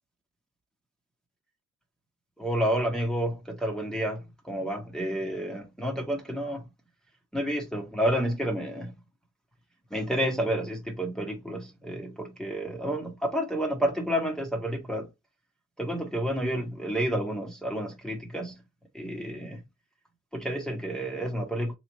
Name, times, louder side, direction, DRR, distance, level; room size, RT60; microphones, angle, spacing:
voice 1, 2.4-6.6 7.3-8.9 9.9-15.1 15.8-18.6 18.9-19.6 20.3-21.7, equal, ahead, 1.2 m, -30 dB
3.2 x 2.7 x 4.1 m
cardioid pair, 90°, 30 cm